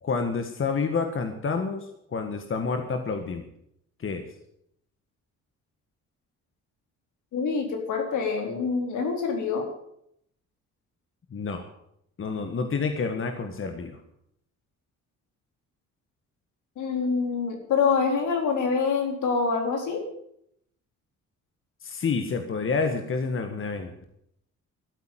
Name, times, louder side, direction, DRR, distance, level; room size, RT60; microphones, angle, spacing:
voice 1, 0.0-3.4 4.0-4.3 11.3-11.6 12.2-14.0 21.8-23.9, left 4 dB, 45° left, 6 dB, 1.7 m, -29 dB
voice 2, 7.3-9.7 16.8-20.0, left 5 dB, 75° left, 3 dB, 3.9 m, -26 dB
13.5 x 8.4 x 9.2 m, 0.74 s
cardioid pair, 90°, 30 cm